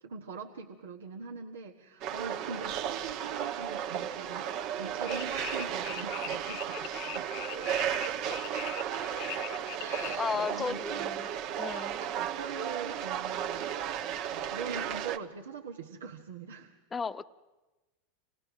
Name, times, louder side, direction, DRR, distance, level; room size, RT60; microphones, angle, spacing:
voice 1, 0.0-7.3 8.0-8.9 9.8-11.1 11.6-11.7 12.2-16.7, right 5 dB, 80° right, 0 dB, 1.4 m, -43 dB
sound 1, 2.0-15.2, right 9 dB, 50° right, 1.1 m, -34 dB
sound 2, 5.1-10.2, left 13 dB, 55° left, 0.7 m, -41 dB
voice 2, 10.0-11.3 11.6-12.0 16.9-17.2, left 5 dB, 20° left, 13 dB, 0.8 m, -34 dB
27.5 x 18.5 x 6.2 m, 1.1 s
hypercardioid pair, 90°, 0 cm